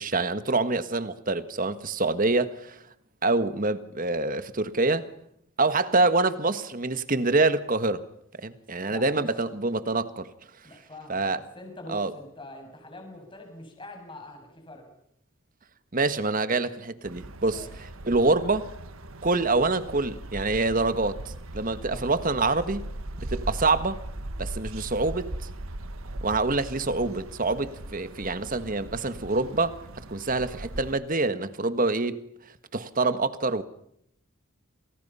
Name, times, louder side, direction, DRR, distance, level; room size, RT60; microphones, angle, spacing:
voice 1, 0.0-2.8 3.2-5.1 5.6-8.1 8.4-10.3 11.1-11.4 11.9-12.1 15.9-18.7 19.2-22.9 23.2-24.0 24.4-25.3 26.2-32.2 32.7-33.6, right 3 dB, 40° right, 12 dB, 1.6 m, -26 dB
voice 2, 8.9-9.3 10.6-14.9 17.5-17.7 21.8-22.1, left 2 dB, 25° left, 3 dB, 7.2 m, -44 dB
sound 1, 17.0-31.0, right 1 dB, 85° right, 1.5 m, -39 dB
29.5 x 27.0 x 5.7 m, 0.73 s
head